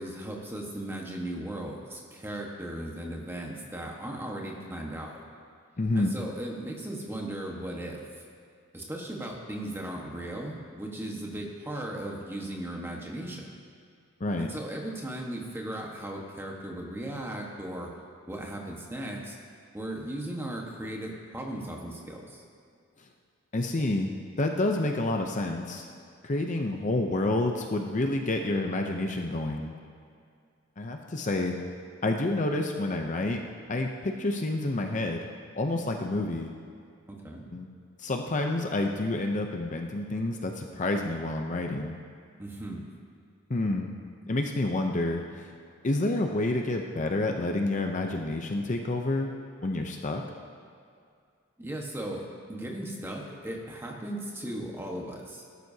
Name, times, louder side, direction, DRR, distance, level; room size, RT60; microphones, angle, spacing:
voice 1, 0.0-5.2 5.9-8.0 8.7-13.5 14.4-17.9 18.3-19.4 19.7-22.4 37.1-37.5 42.4-42.9 51.6-55.4, right 1 dB, 10° right, -1 dB, 1.3 m, -37 dB
voice 2, 5.8-6.1 14.2-14.5 23.5-24.1 24.4-25.8 26.2-29.7 30.8-31.6 32.0-33.4 33.7-35.2 35.5-36.5 37.5-37.7 38.0-42.0 43.5-43.9 44.3-45.5 45.8-49.3 49.6-50.2, left 2 dB, 35° left, 3 dB, 0.6 m, -29 dB
18.5 x 12.5 x 2.8 m, 2.3 s
head